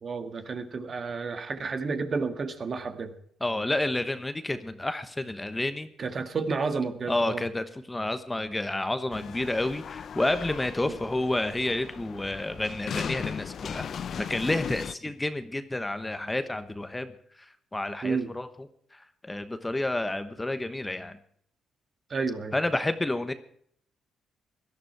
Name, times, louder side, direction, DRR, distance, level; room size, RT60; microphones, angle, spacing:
voice 1, 0.0-3.1 6.0-7.5 10.9-11.0 18.0-18.3 22.1-22.6, right 4 dB, 45° right, 7 dB, 1.7 m, -31 dB
voice 2, 3.4-5.9 7.1-13.9 14.2-17.1 17.7-18.5 18.9-19.0 19.3-21.2 22.5-23.3, left 2 dB, 15° left, 10 dB, 1.1 m, -30 dB
sound 1, 9.1-14.9, left 7 dB, 55° left, 0.6 m, -37 dB
17.5 x 12.0 x 4.7 m, 0.65 s
cardioid pair, 90°, 0 cm